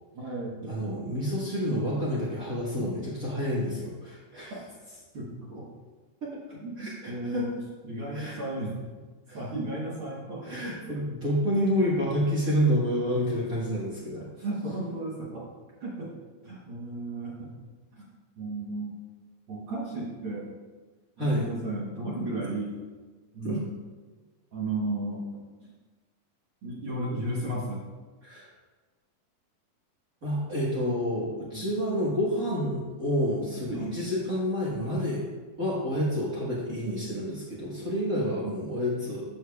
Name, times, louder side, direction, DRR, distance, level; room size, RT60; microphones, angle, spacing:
voice 1, 0.1-0.9 4.5-4.6 4.8-5.7 6.5-7.5 7.8-8.8 9.3-11.0 14.1-15.5 15.8-16.1 16.4-17.5 17.9-18.1 18.4-19.0 19.5-20.5 21.2-22.8 23.3-23.7 24.5-25.2 25.6-25.7 26.6-27.8 31.5-31.7 33.6-34.0, right 2 dB, 55° right, -5 dB, 1.6 m, -34 dB
voice 2, 0.7-4.5 6.2-6.4 6.8-7.5 8.1-8.4 9.3-9.4 10.4-14.3 21.2-21.5 23.4-23.6 28.2-28.5 30.2-35.2 35.6-39.2, equal, 40° right, -7 dB, 1.3 m, -29 dB
13.5 x 7.2 x 2.3 m, 1.3 s
omnidirectional pair, 3.6 m